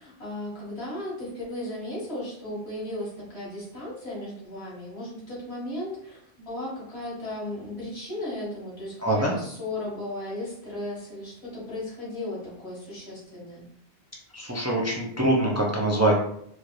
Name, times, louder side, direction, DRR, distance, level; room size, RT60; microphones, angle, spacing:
voice 1, 0.0-13.6, left 1 dB, 80° left, -6 dB, 2.0 m, -36 dB
voice 2, 9.0-9.3 14.3-16.1, right 1 dB, 20° right, -3 dB, 0.5 m, -24 dB
4.4 x 2.5 x 3.1 m, 0.70 s
omnidirectional pair, 1.1 m